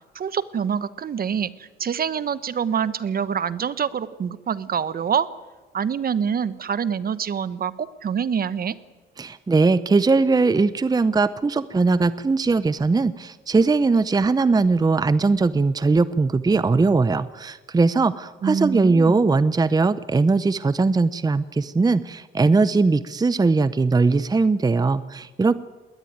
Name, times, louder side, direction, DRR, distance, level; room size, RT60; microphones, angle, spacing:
voice 1, 0.1-5.3 5.7-8.7 18.4-19.2, right 7 dB, 50° right, 16 dB, 1.1 m, -26 dB
voice 2, 9.2-25.5, right 3 dB, 20° right, 16 dB, 0.7 m, -20 dB
21.0 x 18.5 x 9.4 m, 1.2 s
cardioid pair, 90°, 20 cm